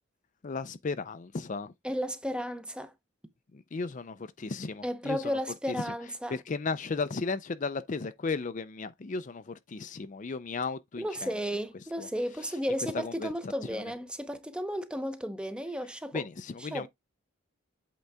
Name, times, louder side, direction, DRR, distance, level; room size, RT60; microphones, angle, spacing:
voice 1, 0.4-1.7 3.5-5.4 5.7-5.9 6.3-11.4 12.0-12.1 12.9-13.8 16.1-16.9, left 4 dB, 40° left, 0.5 m, -35 dB
voice 2, 1.8-2.9 4.8-6.4 11.0-16.2 16.7-16.9, equal, 5° right, 0.7 m, -33 dB
8.1 x 3.8 x 3.4 m
head